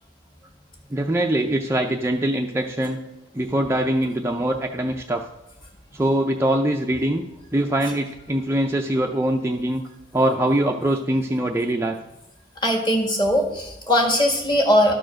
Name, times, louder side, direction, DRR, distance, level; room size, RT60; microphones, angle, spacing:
voice 1, 0.9-3.0 3.3-5.2 5.9-7.2 7.5-9.8 10.1-12.0, right 1 dB, 15° right, 3 dB, 0.4 m, -23 dB
voice 2, 12.6-14.9, equal, 25° left, 1 dB, 1.6 m, -20 dB
12.0 x 4.6 x 6.2 m, 0.92 s
head